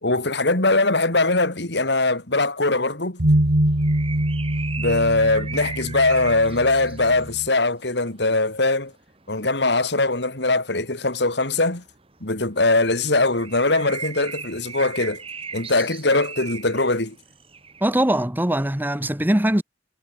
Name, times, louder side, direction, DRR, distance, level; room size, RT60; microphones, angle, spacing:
voice 1, 0.0-3.2 4.8-8.9 9.3-11.8 12.2-15.2 15.5-17.2, left 2 dB, 65° left, 3.8 m, -21 dB
sound 1, 3.2-7.5, right 1 dB, 60° right, 2.2 m, -24 dB
sound 2, 3.7-18.1, right 5 dB, 30° right, 3.3 m, -39 dB
voice 2, 17.8-19.6, right 1 dB, 10° right, 1.3 m, -21 dB
head